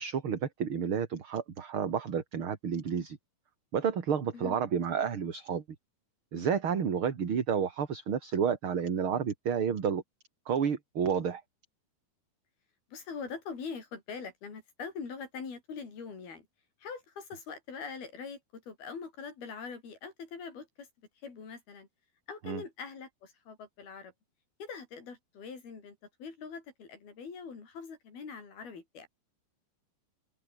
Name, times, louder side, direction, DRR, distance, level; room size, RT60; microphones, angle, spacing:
voice 1, 0.0-3.2 3.7-5.6 6.3-10.0 10.5-11.4 22.4-22.6, right 7 dB, 40° right, 2.6 m, -30 dB
voice 2, 12.9-16.5 16.8-20.9 21.2-21.9 22.3-24.1 24.6-29.1, left 5 dB, 80° left, 7.3 m, -43 dB
omnidirectional pair, 4.3 m